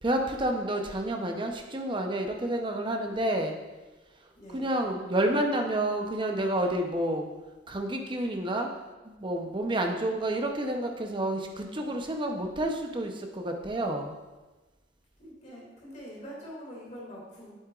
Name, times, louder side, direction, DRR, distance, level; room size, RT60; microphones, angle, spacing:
voice 1, 0.0-3.6 4.5-7.3 7.7-8.7 9.0-14.2, right 1 dB, 25° right, 3 dB, 0.7 m, -29 dB
voice 2, 4.4-4.7 15.2-17.5, equal, 40° left, -4 dB, 2.4 m, -44 dB
8.5 x 7.8 x 2.5 m, 1.2 s
head